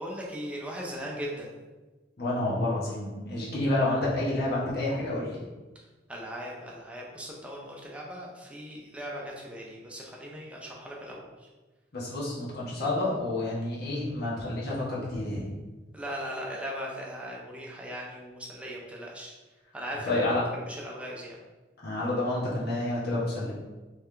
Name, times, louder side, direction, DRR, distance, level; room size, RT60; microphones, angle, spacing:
voice 1, 0.0-1.5 5.7-5.8 6.1-11.5 15.9-19.4 19.7-21.4, equal, 5° right, -3 dB, 0.7 m, -39 dB
voice 2, 2.2-5.4 11.9-15.5 20.0-20.4 21.8-23.5, left 2 dB, 60° left, -6 dB, 1.3 m, -29 dB
3.5 x 3.3 x 3.3 m, 1.2 s
head